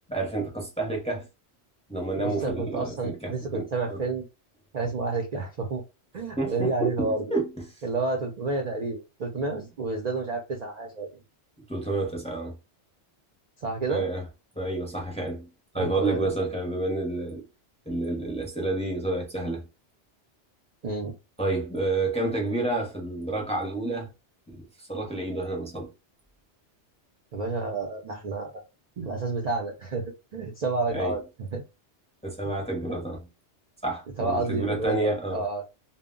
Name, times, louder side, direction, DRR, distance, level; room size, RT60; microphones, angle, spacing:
voice 1, 0.1-1.3 1.9-4.0 6.4-7.7 11.7-12.5 13.9-14.3 14.6-15.5 15.7-17.4 17.9-19.6 21.4-24.1 24.5-25.9 30.9-31.1 32.2-33.3 33.8-35.4, right 2 dB, 5° left, 0.6 m, -29 dB
voice 2, 2.2-4.3 4.7-5.8 6.1-7.3 7.8-11.1 13.6-14.1 15.8-16.2 20.8-21.1 27.3-28.6 29.0-31.6 32.4-32.5 34.2-35.6, right 3 dB, 50° right, 0.5 m, -30 dB
2.1 x 2.1 x 3.6 m
omnidirectional pair, 1.2 m